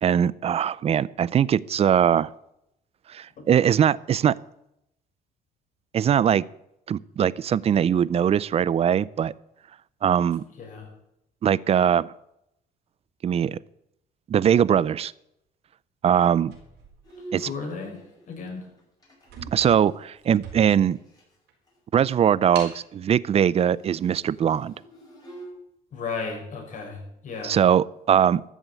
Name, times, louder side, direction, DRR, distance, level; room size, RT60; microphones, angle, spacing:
voice 1, 0.0-2.3 3.1-4.4 5.9-6.4 6.9-9.3 10.0-10.4 11.4-12.1 13.2-13.6 14.3-15.1 16.0-16.5 17.3-17.5 19.5-21.0 21.9-24.7 27.4-28.4, right 9 dB, 35° right, 21 dB, 0.5 m, -21 dB
voice 2, 10.6-10.9 17.4-18.0 18.3-18.7 25.9-27.6, left 4 dB, 50° left, 1 dB, 5.8 m, -34 dB
sound 1, 16.5-17.7 18.4-18.6 18.9-19.0 19.2-21.0 21.5-21.6 22.5-22.8, right 6 dB, 85° right, 4.4 m, -42 dB
Bowed string instrument, 17.0-21.4 21.7-21.8 22.0-22.4 22.6-25.5, right 2 dB, 25° left, 6.0 m, -47 dB
13.5 x 7.3 x 8.3 m, 0.82 s
cardioid pair, 110°, 17 cm